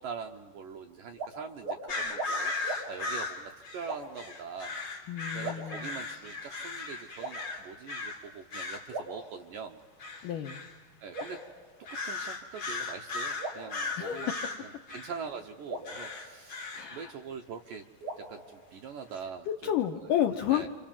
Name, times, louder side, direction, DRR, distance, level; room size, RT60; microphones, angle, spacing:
voice 1, 0.0-4.8 5.3-9.8 11.0-11.4 12.0-14.3 14.6-17.8 18.2-19.5 20.0-20.1 20.5-20.7, right 6 dB, 75° right, 5 dB, 2.1 m, -43 dB
sound 1, 1.1-1.3 1.6-1.8 2.1-2.3 2.6-2.8 3.8-4.3 5.4-6.3 7.2-7.9 8.9-9.9 11.1-12.3 13.4-14.6 15.7-17.1 18.0-19.2, right 2 dB, 30° right, 6.0 m, -41 dB
sound 2, 1.9-8.2 8.5-8.9 10.0-10.7 11.1-11.4 11.9-15.2 15.8-16.9, left 3 dB, 30° left, 3.2 m, -37 dB
voice 2, 5.1-5.9 10.2-10.6 14.0-14.5 16.7-17.1 19.5-20.7, left 10 dB, 75° left, 4 dB, 2.0 m, -31 dB
30.0 x 27.0 x 7.4 m, 1.3 s
omnidirectional pair, 5.1 m